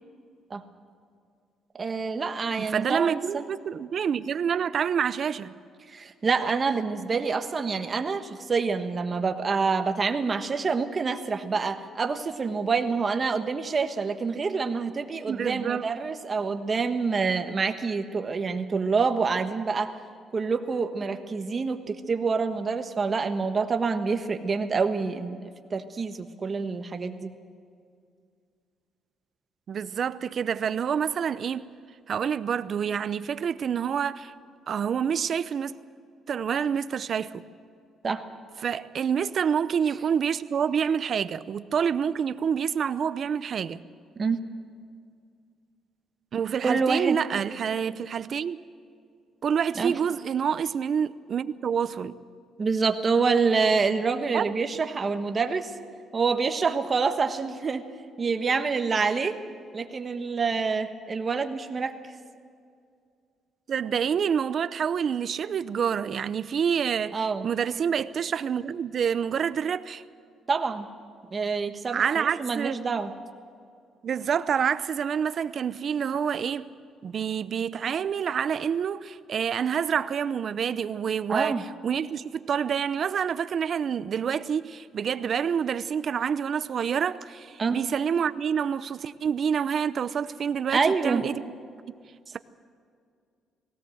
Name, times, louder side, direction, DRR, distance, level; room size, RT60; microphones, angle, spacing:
voice 1, 1.8-3.4 5.9-20.0 20.3-25.4 25.7-27.3 38.0-38.2 44.2-44.4 46.6-47.2 49.8-49.9 52.6-55.7 56.1-57.8 58.2-59.4 59.7-61.9 67.1-67.5 70.5-70.9 71.3-73.1 81.3-81.6 87.6-87.8 90.7-91.2, right 5 dB, 30° right, 1.3 m, -27 dB
voice 2, 2.6-5.5 15.3-15.9 29.7-31.7 32.1-34.3 34.7-35.8 36.3-37.4 38.6-43.8 46.3-48.6 49.4-52.2 54.3-54.5 63.7-70.0 71.9-72.8 74.0-76.7 77.0-81.6 81.8-91.4 91.9-92.0, right 7 dB, 45° right, 0.7 m, -27 dB
19.5 x 17.5 x 7.8 m
cardioid pair, 125°, 0 cm